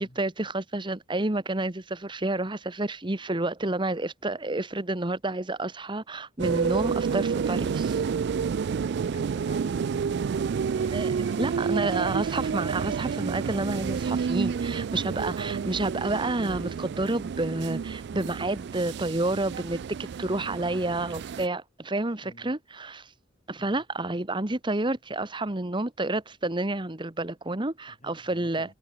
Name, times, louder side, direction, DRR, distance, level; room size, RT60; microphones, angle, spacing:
voice 1, 0.0-8.0 10.8-23.1 23.5-28.7, right 2 dB, 25° right, 1.3 m, -30 dB
sound 1, 6.4-21.5, right 6 dB, 60° right, 0.3 m, -29 dB
voice 2, 8.8-11.4 11.9-12.0 12.8-13.0 15.4-15.7 22.2-22.5 23.6-23.8 27.9-28.7, left 1 dB, 40° left, 6.0 m, -51 dB
head